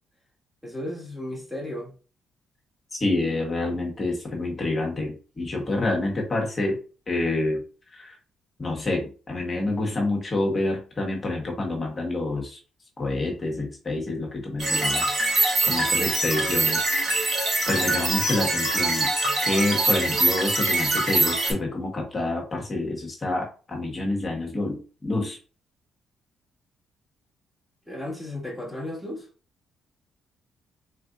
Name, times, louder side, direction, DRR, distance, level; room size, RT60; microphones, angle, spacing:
voice 1, 0.6-1.9 27.9-29.3, left 1 dB, ahead, 1.8 m, -34 dB
voice 2, 2.9-6.8 7.1-7.6 7.9-8.1 8.6-12.6 13.0-16.8 17.7-19.1 19.4-25.4, left 2 dB, 30° left, 1.4 m, -28 dB
sound 1, 14.6-21.5, right 2 dB, 45° right, 1.8 m, -23 dB
3.8 x 3.3 x 2.5 m
cardioid pair, 90°, 0 cm